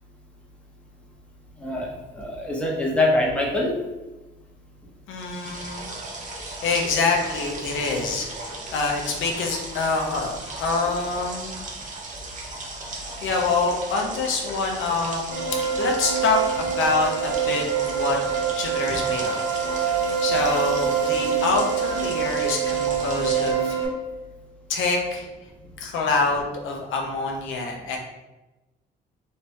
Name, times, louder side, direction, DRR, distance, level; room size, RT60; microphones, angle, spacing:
voice 1, 1.6-3.8 18.9-19.0, left 2 dB, 5° left, -3 dB, 1.0 m, -24 dB
voice 2, 5.1-5.9 6.3-11.6 13.2-18.2 18.6-19.4 19.7-23.8 24.7-25.3 25.8-28.0, left 4 dB, 80° left, 0 dB, 0.7 m, -26 dB
sound 1, 5.2-23.5, right 2 dB, 40° right, 0.8 m, -36 dB
sound 2, 15.3-23.9, right 7 dB, 80° right, 1.4 m, -25 dB
3.3 x 2.8 x 3.2 m, 1.1 s
cardioid pair, 90°, 20 cm